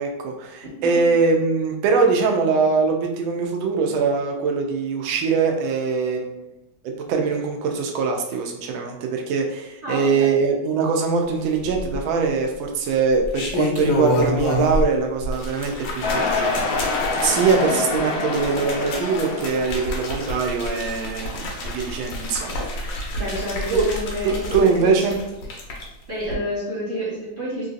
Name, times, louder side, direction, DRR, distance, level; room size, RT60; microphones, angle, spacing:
voice 1, 0.0-6.4 6.8-22.6 23.7-23.8 24.2-25.2, right 4 dB, 80° right, 3 dB, 1.3 m, -22 dB
voice 2, 9.8-10.3 23.2-25.0 26.1-27.7, equal, 35° right, -10 dB, 0.9 m, -29 dB
sound 1, 11.6-12.3 13.1-14.9 15.2-25.8 26.2-26.3, left 1 dB, 70° left, 1.3 m, -29 dB
sound 2, 16.0-20.1, left 3 dB, 90° left, 0.8 m, -26 dB
3.7 x 2.6 x 2.4 m, 0.91 s
omnidirectional pair, 2.2 m